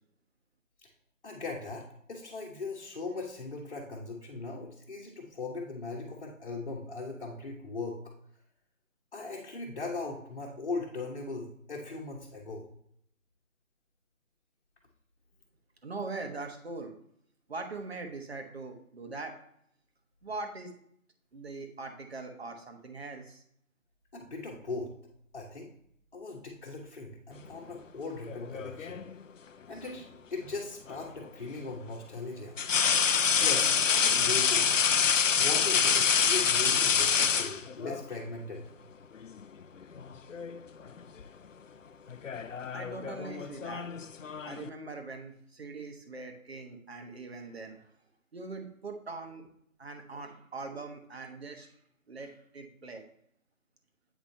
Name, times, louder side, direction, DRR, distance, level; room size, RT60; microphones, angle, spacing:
voice 1, 1.2-8.0 9.1-12.7 24.1-24.9 25.3-25.7 26.1-29.0 29.7-32.6 33.4-34.7 35.4-38.6, left 3 dB, 40° left, -4 dB, 1.2 m, -39 dB
voice 2, 15.8-16.9 17.5-19.4 20.2-20.7 21.3-23.4 42.7-43.9 44.4-47.8 48.3-49.5 49.8-51.7 52.1-53.0, right 3 dB, 50° right, 4 dB, 1.3 m, -41 dB
sound 1, 28.3-29.1 30.9-31.0 32.6-38.0 39.2-39.4 39.8-40.6 40.9-41.2 42.1-44.7, left 7 dB, 65° left, 0.6 m, -27 dB
8.4 x 5.0 x 2.7 m, 0.69 s
figure-of-eight pair, 165°, 41 cm